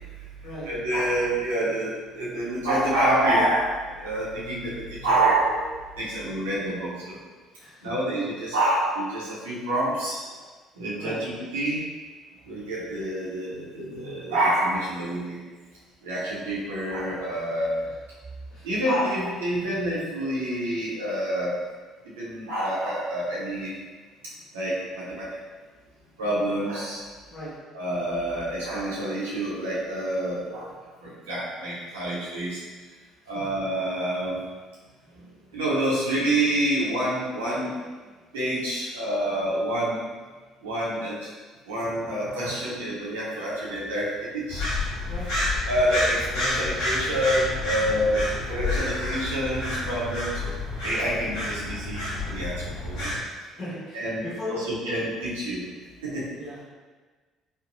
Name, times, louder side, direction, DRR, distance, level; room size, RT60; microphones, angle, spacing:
voice 1, 0.6-7.2 7.8-10.2 10.8-11.8 12.5-15.4 16.0-17.7 18.6-21.6 22.2-23.7 24.5-25.3 26.2-27.0 27.7-30.7 31.0-32.6 33.3-34.4 35.5-37.8 38.3-40.0 40.6-41.3 41.7-44.7 45.7-50.5 50.8-52.0 52.3-53.1 53.9-54.2 54.5-55.6 56.0-56.3, right 1 dB, 85° right, -8 dB, 0.9 m, -27 dB
voice 2, 7.6-8.1 11.0-11.2 17.8-18.0 18.5-18.7 27.3-27.5 33.3-33.4 45.1-45.3 47.8-48.0 53.5-54.7 56.3-56.7, left 1 dB, 55° left, -8 dB, 1.2 m, -38 dB
sound 1, 44.5-53.2, left 2 dB, 75° left, 1.0 m, -29 dB
3.4 x 2.1 x 2.6 m, 1.4 s
hypercardioid pair, 55°, 0 cm